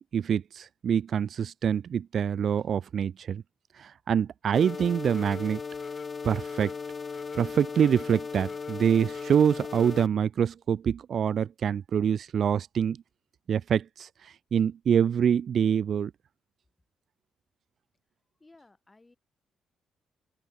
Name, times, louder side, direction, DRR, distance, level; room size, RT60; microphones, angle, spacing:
voice 1, 0.1-3.4 3.8-5.6 6.2-6.7 7.3-13.0 13.5-16.1, right 8 dB, 55° right, 0.5 m, -25 dB
sound 1, 4.5-10.1, left 5 dB, 35° left, 1.1 m, -37 dB
voice 2, 18.4-19.2, left 2 dB, 20° left, 5.2 m, -57 dB
open air
cardioid pair, 90°, 0 cm